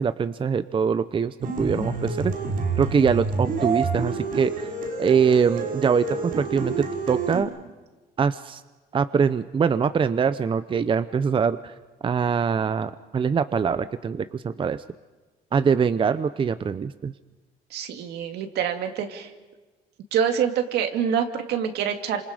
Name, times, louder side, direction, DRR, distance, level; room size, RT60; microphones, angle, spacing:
voice 1, 0.0-2.3 2.8-4.5 5.0-7.5 8.2-8.6 8.9-11.7 12.0-14.8 15.5-17.1, right 6 dB, 30° right, 13 dB, 0.7 m, -23 dB
sound 1, 1.4-7.4, right 4 dB, 60° right, 5.0 m, -28 dB
voice 2, 17.7-19.3 20.1-22.2, right 8 dB, 80° right, 5 dB, 2.2 m, -26 dB
28.0 x 26.5 x 5.0 m, 1.2 s
cardioid pair, 100°, 17 cm